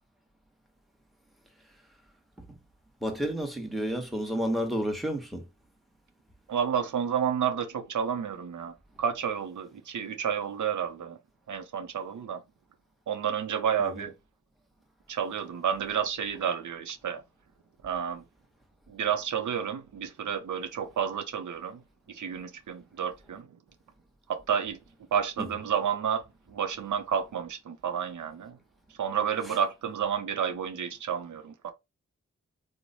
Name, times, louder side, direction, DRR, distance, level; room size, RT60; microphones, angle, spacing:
voice 1, 3.0-5.5 13.8-14.1 25.4-25.5 29.4-29.6, equal, ahead, 1.0 m, -31 dB
voice 2, 6.5-11.2 11.5-12.4 13.1-14.1 15.1-17.2 17.8-18.2 18.9-21.8 22.1-23.5 24.3-24.8 25.1-28.6 29.0-31.7, right 8 dB, 85° right, 0.5 m, -30 dB
3.0 x 2.0 x 3.9 m
cardioid pair, 50°, 29 cm